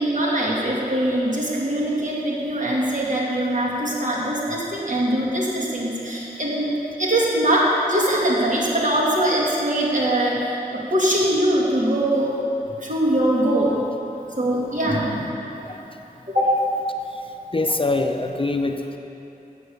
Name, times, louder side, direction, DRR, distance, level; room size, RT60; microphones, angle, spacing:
voice 1, 0.0-6.7 7.0-12.3 12.8-13.8 14.4-15.3 16.3-16.6, right 1 dB, 55° right, -5 dB, 2.3 m, -22 dB
voice 2, 17.5-19.0, left 2 dB, 35° left, 5 dB, 0.5 m, -23 dB
8.3 x 7.6 x 7.0 m, 3.0 s
wide cardioid pair, 50°, 16 cm